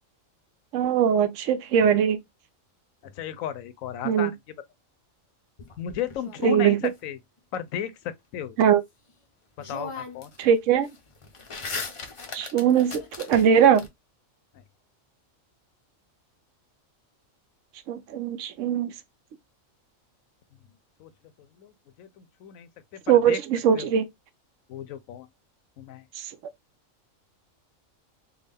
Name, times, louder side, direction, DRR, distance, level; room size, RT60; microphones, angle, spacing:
voice 1, 0.7-2.2 4.0-4.3 6.4-6.8 8.6-8.8 10.4-10.9 12.3-13.8 17.9-18.9 23.1-24.0 26.2-26.3, right 8 dB, 75° right, 0.9 m, -21 dB
voice 2, 3.0-4.4 5.8-7.2 7.5-8.6 9.7-10.3 21.0-21.1 21.6-21.7 22.0-23.4 23.7-23.9 24.7-25.3 25.8-26.0, left 9 dB, 85° left, 1.0 m, -34 dB
sound 1, 5.6-6.9 9.1-9.2 9.6-10.4 10.7-13.9, left 3 dB, 40° left, 0.5 m, -38 dB
3.6 x 2.3 x 3.3 m
omnidirectional pair, 1.4 m